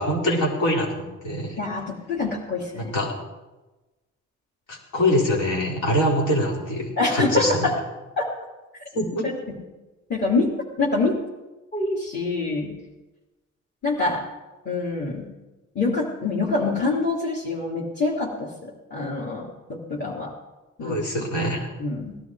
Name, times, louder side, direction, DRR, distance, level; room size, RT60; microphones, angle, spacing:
voice 1, 0.0-1.6 2.8-3.1 4.7-7.7 8.9-9.3 20.8-21.7, left 1 dB, 75° left, -3 dB, 4.6 m, -24 dB
voice 2, 1.6-2.9 7.0-7.7 8.2-8.3 9.2-9.6 10.1-10.5 10.8-11.2 11.7-12.7 13.8-14.2 14.6-15.3 15.7-20.3 20.8-21.0 21.8-22.2, left 3 dB, 35° left, -6 dB, 3.0 m, -25 dB
18.0 x 12.0 x 4.8 m, 1.1 s
cardioid pair, 90°, 30 cm